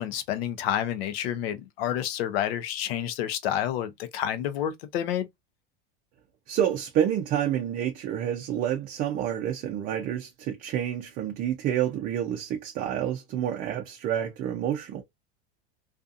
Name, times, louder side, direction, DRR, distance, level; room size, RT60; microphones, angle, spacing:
voice 1, 0.0-5.3, left 10 dB, 75° left, 0.7 m, -29 dB
voice 2, 6.5-15.0, right 10 dB, 30° right, 0.4 m, -28 dB
2.6 x 2.4 x 2.4 m
supercardioid pair, 155°, 30 cm